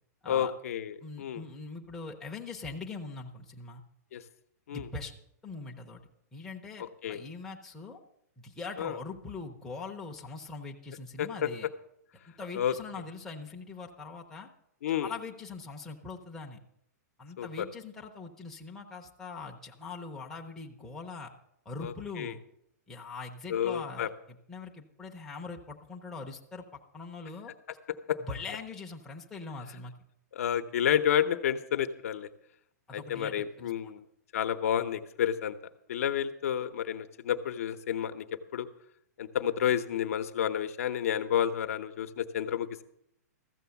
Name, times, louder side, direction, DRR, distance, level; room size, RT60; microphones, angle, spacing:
voice 1, 0.3-1.4 4.1-4.2 4.7-4.9 6.8-7.2 8.8-9.0 11.2-11.5 12.6-12.7 14.8-15.1 17.4-17.7 21.8-22.3 23.5-24.1 28.1-28.2 30.3-32.3 32.9-34.0 34.3-35.6 35.9-38.3 38.5-38.7 39.2-42.8, left 9 dB, 55° left, 9 dB, 0.8 m, -30 dB
voice 2, 1.0-3.8 4.7-5.1 5.4-6.0 6.3-8.0 8.4-11.7 12.4-14.5 14.9-16.6 17.2-21.3 21.7-22.4 22.9-24.1 24.5-27.5 28.2-29.9 32.9-33.9, left 4 dB, 5° left, -2 dB, 0.6 m, -42 dB
14.0 x 7.0 x 7.0 m, 0.74 s
hypercardioid pair, 170°, 9 cm